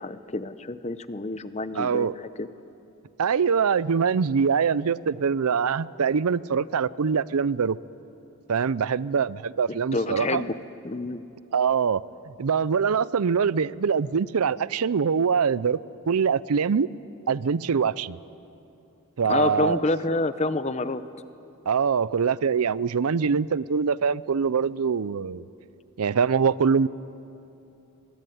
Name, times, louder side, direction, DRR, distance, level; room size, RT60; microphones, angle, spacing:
voice 1, 0.0-2.5 9.9-10.6 10.8-11.2 19.3-21.0, left 2 dB, 30° left, 12 dB, 0.7 m, -28 dB
voice 2, 1.7-2.2 3.2-7.8 8.5-10.4 11.5-12.0 12.4-15.8 16.1-16.9 17.3-18.2 19.2-19.8 21.7-25.4 26.0-26.9, right 6 dB, 85° right, 19 dB, 0.5 m, -23 dB
23.0 x 22.5 x 9.3 m, 2.8 s
head